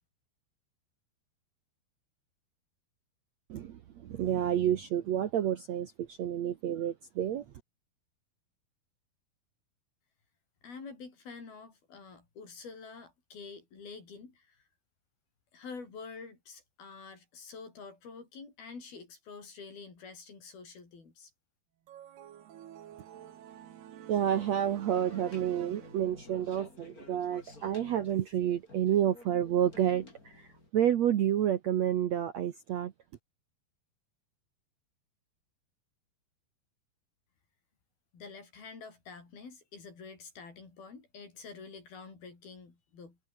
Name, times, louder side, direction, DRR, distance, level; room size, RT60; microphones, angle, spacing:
voice 1, 3.5-7.5 24.1-30.5 30.7-32.9, right 10 dB, 65° right, 1.8 m, -29 dB
voice 2, 10.6-14.6 15.5-21.3 38.1-43.2, left 4 dB, 70° left, 8.3 m, -47 dB
sound 1, 21.9-26.5, right 11 dB, 85° right, 4.1 m, -50 dB
sound 2, 24.1-30.7, left 3 dB, 20° left, 4.8 m, -52 dB
omnidirectional pair, 4.5 m